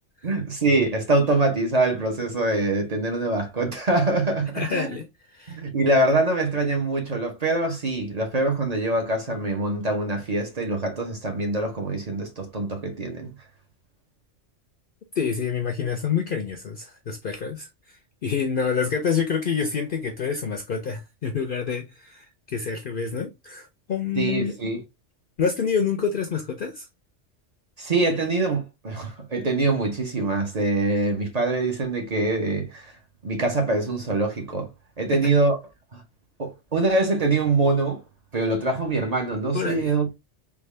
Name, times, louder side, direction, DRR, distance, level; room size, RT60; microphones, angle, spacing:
voice 1, 0.2-4.9 5.5-13.3 24.2-24.8 27.8-32.9 33.2-34.7 35.0-35.6 35.9-36.0 36.4-38.0 38.3-40.1, right 2 dB, 40° right, 0.8 m, -24 dB
voice 2, 4.5-5.1 5.3-5.6 15.1-24.5 25.4-26.9 35.1-35.2 39.5-39.9, left 6 dB, 60° left, 0.6 m, -27 dB
3.6 x 2.3 x 3.1 m
omnidirectional pair, 1.3 m